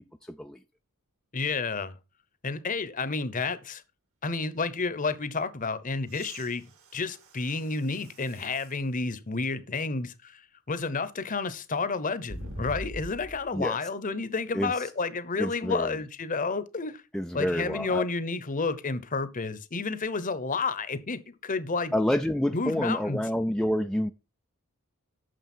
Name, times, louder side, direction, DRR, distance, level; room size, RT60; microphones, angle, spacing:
voice 1, 0.2-0.6 13.5-13.8 14.5-14.9 15.4-16.0 17.1-18.0 21.9-24.1, left 1 dB, 5° left, 0.4 m, -28 dB
voice 2, 1.3-2.0 2.4-3.8 4.2-6.6 6.9-10.4 10.7-17.0 17.3-21.9 22.5-23.2, left 4 dB, 35° left, 0.9 m, -30 dB
sound 1, 6.0-8.8 9.5-9.6 12.3-13.5 15.3-15.4, right 1 dB, 60° right, 2.2 m, -43 dB
9.3 x 6.6 x 4.4 m
head